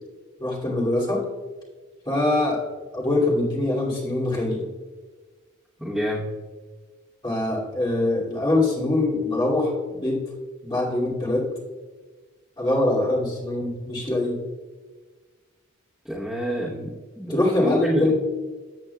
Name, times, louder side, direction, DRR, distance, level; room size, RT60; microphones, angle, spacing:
voice 1, 0.4-1.2 2.1-2.6 2.9-4.6 7.2-10.2 10.6-11.5 12.6-14.4 17.3-18.1, left 2 dB, 20° left, -5 dB, 2.5 m, -23 dB
voice 2, 5.8-6.3 16.1-18.1, equal, ahead, -7 dB, 1.0 m, -28 dB
14.0 x 8.0 x 2.3 m, 1.4 s
head